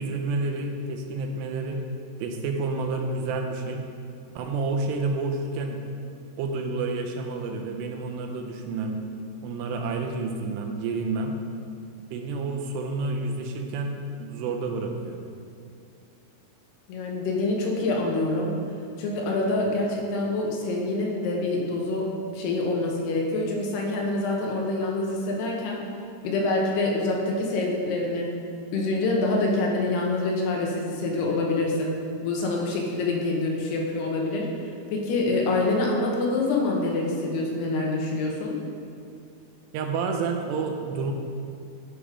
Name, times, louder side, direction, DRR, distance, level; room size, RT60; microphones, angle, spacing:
voice 1, 0.0-1.8 2.2-3.9 4.4-5.8 6.4-9.0 9.4-11.4 12.0-15.2 39.7-41.1, right 3 dB, 90° right, 3 dB, 2.8 m, -29 dB
voice 2, 16.9-18.5 19.0-25.8 26.2-28.3 28.7-31.9 32.2-34.5 34.9-38.6, left 2 dB, 75° left, -1 dB, 3.0 m, -26 dB
10.0 x 5.1 x 4.9 m, 2.5 s
omnidirectional pair, 4.8 m